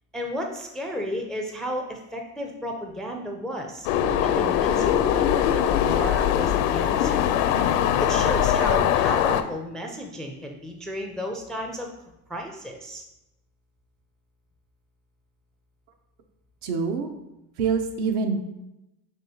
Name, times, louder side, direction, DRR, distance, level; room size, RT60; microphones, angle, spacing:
voice 1, 0.1-3.9 4.2-7.2 8.0-11.9 12.3-13.0, equal, ahead, 3 dB, 0.4 m, -33 dB
sound 1, 3.8-9.4, left 10 dB, 60° left, 0.5 m, -22 dB
voice 2, 16.6-17.1 17.6-18.4, right 5 dB, 70° right, 5 dB, 0.9 m, -25 dB
6.1 x 3.0 x 2.8 m, 0.92 s
hypercardioid pair, 80°, 47 cm